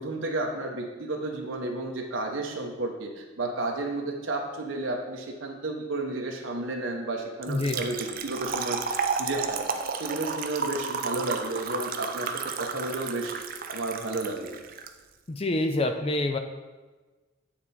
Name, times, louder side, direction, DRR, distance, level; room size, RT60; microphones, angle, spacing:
voice 1, 0.0-12.3 12.6-13.4 13.7-14.6, right 2 dB, 75° right, 1 dB, 0.9 m, -32 dB
Trickle dribble / Fill (with liquid), 7.4-14.9, right 5 dB, 45° right, 0.5 m, -32 dB
voice 2, 7.5-7.8 15.3-16.4, left 2 dB, 30° left, 6 dB, 0.4 m, -27 dB
8.7 x 4.4 x 4.2 m, 1.3 s
head